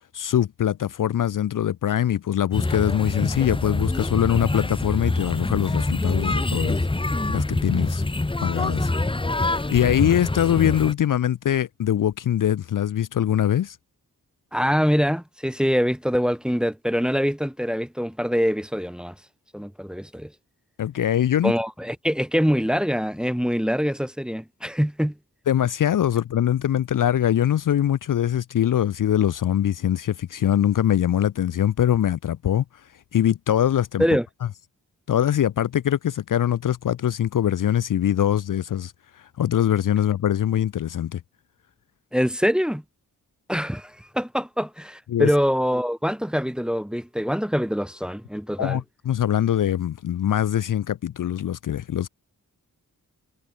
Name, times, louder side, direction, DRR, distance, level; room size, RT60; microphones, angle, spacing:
voice 1, 0.1-6.8 7.3-8.1 8.4-8.9 9.7-13.8 20.8-21.5 25.5-32.6 33.1-34.0 35.1-38.9 39.4-41.2 45.1-45.3 48.6-52.1, left 10 dB, 65° left, 0.5 m, -22 dB
sound 1, 2.5-10.9, left 2 dB, 15° left, 0.9 m, -25 dB
voice 2, 14.5-19.1 19.5-20.3 21.4-25.2 34.0-34.2 42.1-42.8 43.5-48.8, equal, ahead, 1.2 m, -24 dB
cardioid pair, 65°, 35 cm